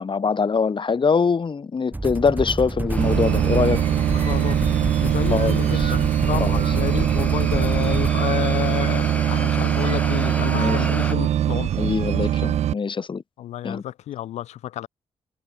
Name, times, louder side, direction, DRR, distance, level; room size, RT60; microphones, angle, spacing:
voice 1, 0.0-3.8 5.3-5.9 6.4-6.6 10.5-11.0 11.8-13.2 13.6-13.8, left 5 dB, 50° left, 2.7 m, -23 dB
sound 1, 1.9-8.1, right 2 dB, 15° right, 1.2 m, -28 dB
sound 2, 2.9-11.1, left 1 dB, 10° left, 3.0 m, -35 dB
sound 3, 3.0-12.7, right 11 dB, 75° right, 1.0 m, -22 dB
voice 2, 4.1-4.6 5.0-11.8 13.4-14.9, left 12 dB, 85° left, 1.2 m, -30 dB
supercardioid pair, 55°, 11 cm